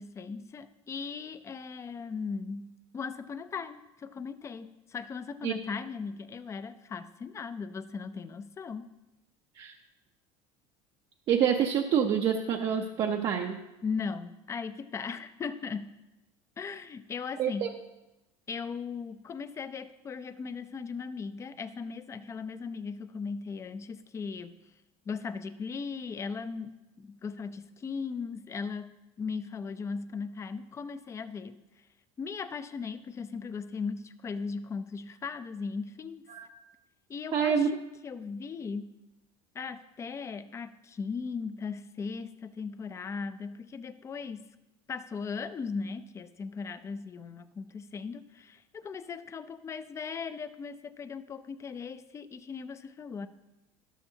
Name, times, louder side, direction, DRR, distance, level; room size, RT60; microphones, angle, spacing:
voice 1, 0.0-8.9 13.8-15.9 16.6-17.7 18.5-24.5 25.1-31.6 32.2-36.3 37.1-38.9 39.5-44.5 44.9-53.3, left 5 dB, 20° left, 12 dB, 0.5 m, -38 dB
voice 2, 11.3-13.6 17.4-17.7 36.3-36.5 37.3-37.7, right 8 dB, 40° right, 2 dB, 0.7 m, -27 dB
13.0 x 12.0 x 2.8 m, 0.98 s
cardioid pair, 140°, 13 cm